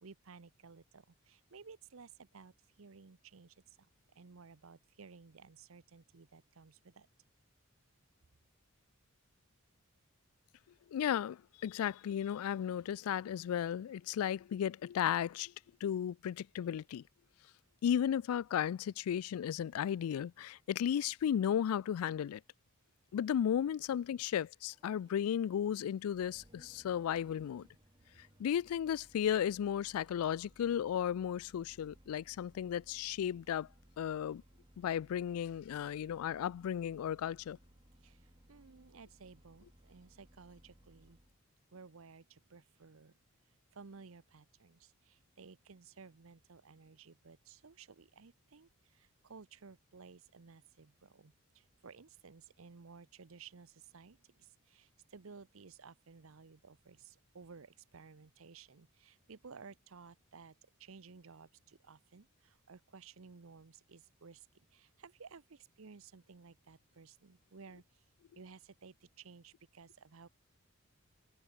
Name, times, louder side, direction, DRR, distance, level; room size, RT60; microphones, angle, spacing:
voice 1, 0.0-3.8 4.2-7.1 38.0-38.2 38.5-41.2 41.7-43.2 43.7-60.5 60.8-64.5 64.7-67.8 68.4-70.3, right 5 dB, 70° right, 0.8 m, -56 dB
voice 2, 10.9-15.5 15.8-17.0 17.8-22.4 23.1-27.7 28.4-33.7 34.0-34.4 34.8-37.6, left 9 dB, 85° left, 0.3 m, -34 dB
Engine starting, 23.0-41.4, right 1 dB, 25° right, 1.9 m, -64 dB
head